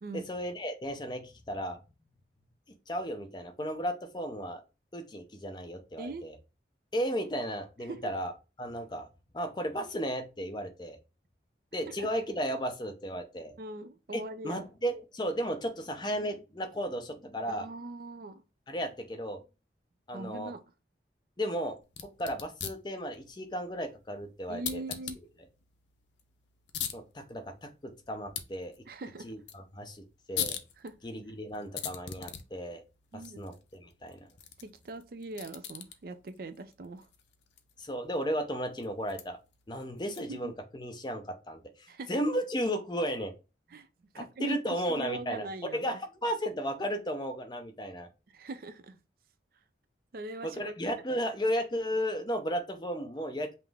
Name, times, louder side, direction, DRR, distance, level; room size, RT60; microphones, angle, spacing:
voice 1, 0.1-1.8 2.9-4.6 4.9-6.4 6.9-8.3 8.6-9.1 9.3-11.0 11.7-13.5 14.1-17.7 18.7-19.4 20.1-20.5 21.4-24.8 26.9-28.8 29.2-30.6 31.0-32.8 33.1-34.3 37.8-39.4 39.7-43.3 44.2-45.5 45.7-48.1 50.4-53.6, equal, 25° left, 0.6 m, -34 dB
voice 2, 6.0-6.3 7.8-8.1 11.9-12.1 13.6-14.7 17.5-18.4 20.1-20.6 24.5-25.2 28.9-29.3 30.8-30.9 33.1-33.5 34.6-37.1 40.3-40.5 41.9-42.1 43.7-43.9 44.1-46.0 48.3-49.0 50.1-50.7 51.1-51.2, right 2 dB, 55° right, 0.4 m, -41 dB
sound 1, 21.8-40.5, left 9 dB, 75° left, 0.6 m, -44 dB
5.6 x 2.0 x 3.4 m
head